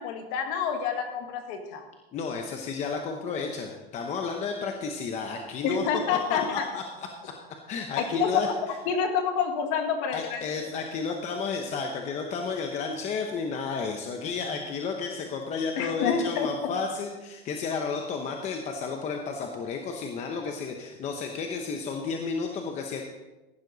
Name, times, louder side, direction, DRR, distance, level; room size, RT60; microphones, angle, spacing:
voice 1, 0.0-1.8 5.6-6.7 8.0-8.5 8.9-10.4 15.8-16.5, left 6 dB, 45° left, 5 dB, 1.9 m, -28 dB
voice 2, 2.1-5.8 6.3-6.8 7.2-7.3 7.7-8.5 10.1-23.0, left 5 dB, 20° left, 3 dB, 0.9 m, -32 dB
15.0 x 11.5 x 4.0 m, 1.1 s
supercardioid pair, 170°, 31 cm